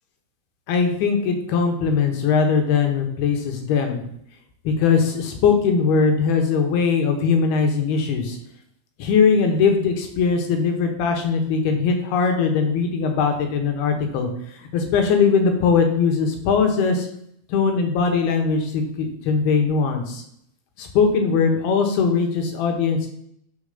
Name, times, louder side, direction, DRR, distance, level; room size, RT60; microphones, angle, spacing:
voice 1, 0.7-4.0 4.6-8.4 9.0-14.3 14.6-17.1 17.5-20.2 20.8-23.1, left 5 dB, 85° left, 4 dB, 3.2 m, -20 dB
6.4 x 5.1 x 6.5 m, 0.70 s
omnidirectional pair, 4.4 m